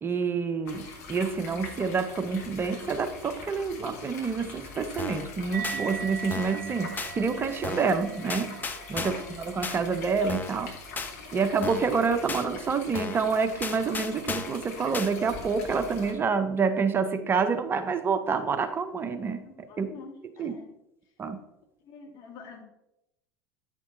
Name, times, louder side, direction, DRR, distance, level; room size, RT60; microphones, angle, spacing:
voice 1, 0.0-8.6 8.9-10.7 11.3-19.9 20.4-20.5 21.2-21.4, right 5 dB, 25° right, 9 dB, 0.7 m, -28 dB
sound 1, 0.7-16.1, left 4 dB, 65° left, 1.4 m, -43 dB
sound 2, 5.0-5.3 5.6-5.8 6.3-6.6 7.0-7.1 7.6-8.0 8.3-9.3 9.6-9.8 10.3-10.6 11.0-11.1 11.6-11.9 12.3-12.4 12.9-13.3 13.6-14.6 14.9-15.1, left 4 dB, 20° left, 0.7 m, -35 dB
sound 3, 5.5-12.4, right 6 dB, 70° right, 0.4 m, -41 dB
voice 2, 19.4-20.8 21.8-22.6, left 5 dB, 45° left, 3 dB, 1.4 m, -47 dB
9.4 x 6.0 x 2.7 m, 0.86 s
figure-of-eight pair, 80°, 9 cm